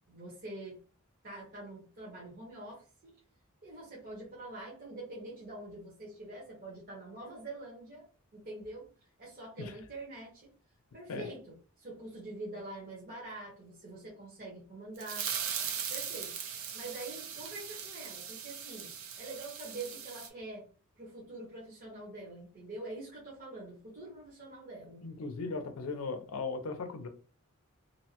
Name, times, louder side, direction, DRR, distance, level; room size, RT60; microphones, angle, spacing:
voice 1, 0.1-0.8 1.2-3.1 3.6-8.0 8.3-8.9 9.2-10.5 10.9-15.3 15.9-16.3 16.7-18.9 19.2-20.7 20.9-25.0, right 2 dB, 40° right, 1.0 m, -45 dB
sound 1, 15.0-20.3, right 7 dB, 65° right, 0.5 m, -39 dB
voice 2, 25.0-27.1, left 4 dB, 80° left, 0.5 m, -37 dB
2.7 x 2.1 x 2.8 m
head